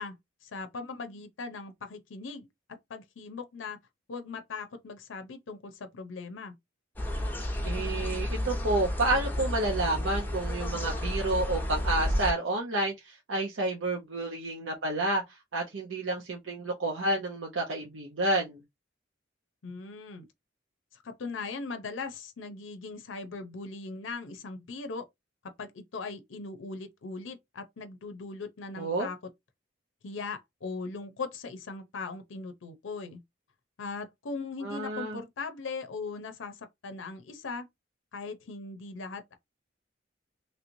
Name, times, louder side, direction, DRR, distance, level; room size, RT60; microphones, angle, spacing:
voice 1, 0.0-2.5 2.9-3.8 4.1-6.5 19.6-20.3 20.9-25.1 25.4-29.2 30.0-33.2 33.8-37.7 38.1-39.4, left 4 dB, 90° left, 0.6 m, -39 dB
sound 1, 7.0-12.3, left 1 dB, 10° left, 0.6 m, -31 dB
voice 2, 7.6-15.2 15.5-18.6 28.8-29.1 34.6-35.2, right 2 dB, 85° right, 0.7 m, -30 dB
3.2 x 2.9 x 2.6 m
head